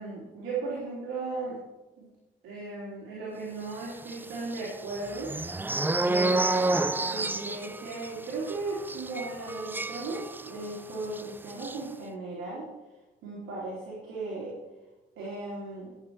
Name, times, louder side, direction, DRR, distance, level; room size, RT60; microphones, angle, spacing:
voice 1, 0.0-1.6 2.0-2.1 2.4-5.3 6.0-12.7 13.2-14.5 15.2-15.9, right 3 dB, 85° right, -6 dB, 3.3 m, -36 dB
sound 1, 4.0-10.7 11.0-11.2 11.5-11.8, right 2 dB, 10° right, 0.4 m, -30 dB
12.5 x 7.6 x 4.7 m, 1.1 s
cardioid pair, 90°, 20 cm